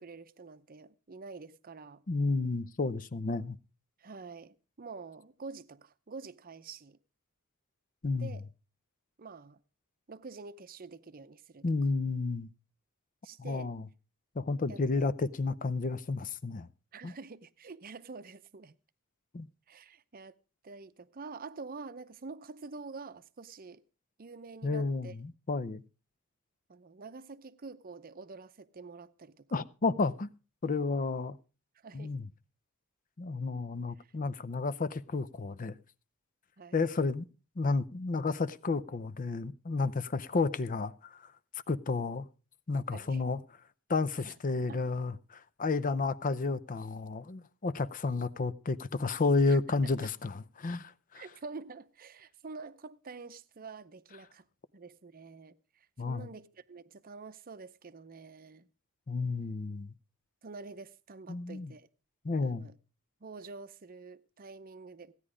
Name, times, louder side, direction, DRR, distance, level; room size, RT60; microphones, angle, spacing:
voice 1, 0.0-2.0 4.0-7.0 8.1-8.5 9.2-9.6 10.1-11.7 13.2-13.7 14.7-15.1 16.9-18.8 19.7-20.3 20.6-23.8 24.2-25.1 26.7-29.6 31.7-32.1 34.0-34.1 36.6-36.9 42.9-43.2 44.1-44.4 44.7-44.8 49.5-49.6 51.1-54.4 54.7-58.7 60.4-61.9 62.4-62.7 63.2-65.1, right 4 dB, 40° right, 0.6 m, -47 dB
voice 2, 2.1-3.6 8.0-8.3 11.6-12.5 13.4-13.8 14.4-16.7 17.0-17.1 19.3-19.5 24.6-25.8 29.5-30.3 30.6-31.4 31.9-32.3 33.2-35.8 36.7-37.3 37.6-41.2 41.7-42.3 42.7-43.4 43.9-51.2 56.0-56.3 59.1-59.9 61.3-61.7 62.2-62.7, left 3 dB, 40° left, 0.6 m, -31 dB
16.0 x 9.8 x 5.0 m
head